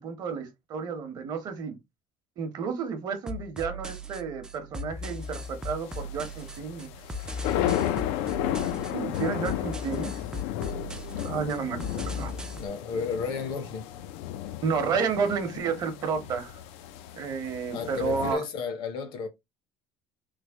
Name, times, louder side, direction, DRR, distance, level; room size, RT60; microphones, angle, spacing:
voice 1, 0.0-1.8 2.4-6.9 8.9-10.1 11.2-12.3 14.6-16.6 17.1-18.4, right 5 dB, 40° right, 0.8 m, -31 dB
sound 1, 3.3-12.7, left 1 dB, 10° right, 0.3 m, -38 dB
sound 2, 5.3-18.3, left 12 dB, 80° left, 0.4 m, -34 dB
voice 2, 12.6-13.9 17.7-19.3, left 5 dB, 50° left, 0.7 m, -32 dB
3.2 x 2.0 x 3.4 m
cardioid pair, 160°, 10 cm